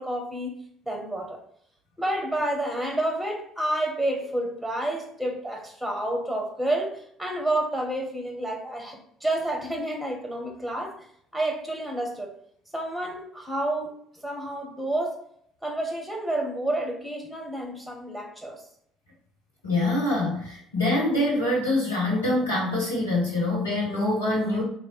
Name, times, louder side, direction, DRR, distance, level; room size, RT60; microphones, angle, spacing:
voice 1, 0.0-1.4 2.0-11.1 11.3-12.3 12.7-13.9 14.2-15.2 15.6-18.6, right 1 dB, ahead, 1 dB, 1.1 m, -29 dB
voice 2, 19.6-24.6, left 1 dB, 85° left, -5 dB, 1.2 m, -25 dB
3.2 x 2.4 x 4.0 m, 0.66 s
figure-of-eight pair, 55°, 0 cm